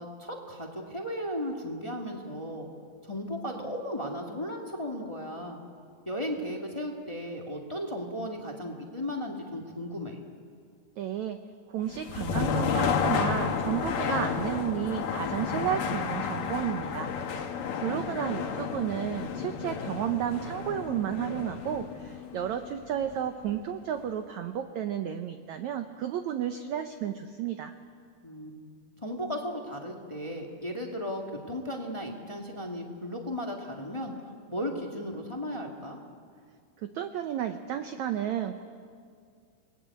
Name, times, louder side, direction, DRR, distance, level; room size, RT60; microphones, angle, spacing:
voice 1, 0.0-2.7 3.0-5.6 6.0-10.2 17.9-18.5 28.2-28.7 29.0-36.0, equal, 25° left, 1 dB, 0.6 m, -36 dB
voice 2, 11.0-11.4 11.7-17.1 17.7-27.7 36.8-38.7, right 10 dB, 90° right, 8 dB, 1.6 m, -32 dB
sound 1, 11.9-23.7, left 6 dB, 65° left, 3.0 m, -32 dB
29.5 x 20.5 x 8.5 m, 2.2 s
omnidirectional pair, 4.5 m